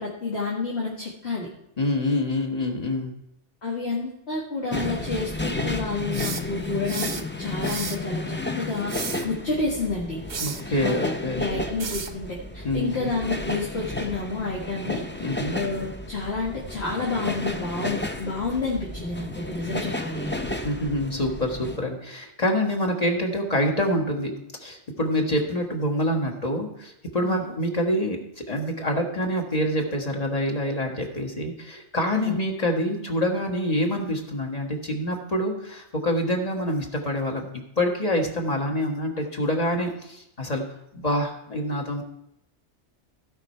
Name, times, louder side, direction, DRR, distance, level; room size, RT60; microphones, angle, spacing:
voice 1, 0.0-1.5 3.6-8.9 9.2-10.2 10.8-15.0 15.5-20.3 27.2-27.5 32.1-32.4, left 3 dB, 65° left, -4 dB, 2.0 m, -30 dB
voice 2, 1.8-3.1 10.4-11.4 12.6-12.9 15.2-15.6 20.6-24.3 24.6-37.5 37.8-40.6 40.9-42.0, left 1 dB, 35° left, 1 dB, 1.6 m, -26 dB
sound 1, 4.7-21.8, left 2 dB, 15° left, 0.5 m, -32 dB
sound 2, 6.1-7.2 7.6-8.0 8.7-9.3 10.3-10.6 11.8-12.2, right 5 dB, 45° right, 0.9 m, -33 dB
16.0 x 5.5 x 4.4 m, 0.80 s
omnidirectional pair, 1.2 m